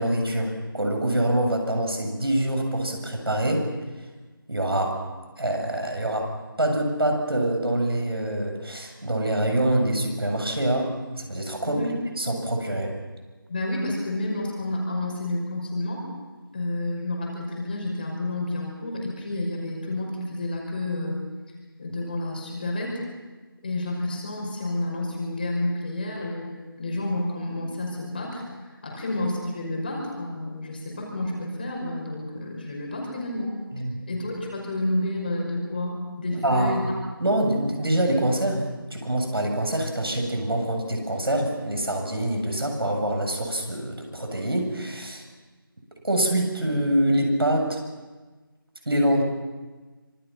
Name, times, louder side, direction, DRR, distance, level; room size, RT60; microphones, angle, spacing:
voice 1, 0.0-3.7 4.5-5.0 5.4-6.3 6.6-11.8 12.2-13.0 28.9-29.0 33.7-34.0 36.3-36.8 37.2-45.2 46.0-47.8 48.9-49.2, right 1 dB, 80° right, 3 dB, 7.9 m, -25 dB
voice 2, 13.5-16.1 16.5-21.2 21.8-23.0 23.6-28.4 28.8-33.5 34.1-36.8, left 1 dB, 25° left, -1 dB, 5.5 m, -30 dB
26.0 x 26.0 x 5.9 m, 1.3 s
figure-of-eight pair, 175°, 12 cm